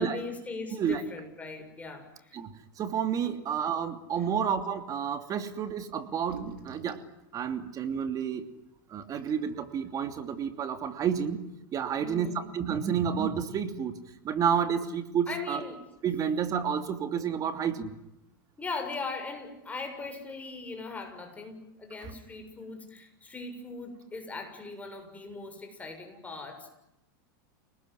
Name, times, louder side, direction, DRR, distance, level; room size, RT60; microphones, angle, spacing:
voice 1, 0.0-2.4 3.2-3.3 4.2-4.3 12.0-12.4 15.3-15.8 18.6-26.7, left 3 dB, 15° left, 5 dB, 7.1 m, -39 dB
voice 2, 0.7-1.0 2.3-7.0 7.3-8.5 8.9-12.3 12.5-13.9 14.2-15.6 16.0-17.9, right 7 dB, 30° right, 8 dB, 2.9 m, -30 dB
sound 1, 5.7-5.8 6.1-7.1 8.2-8.3 8.9-9.0 9.2-9.6, right 8 dB, 90° right, 3.7 m, -45 dB
29.5 x 20.0 x 9.8 m, 0.87 s
supercardioid pair, 125°, 11 cm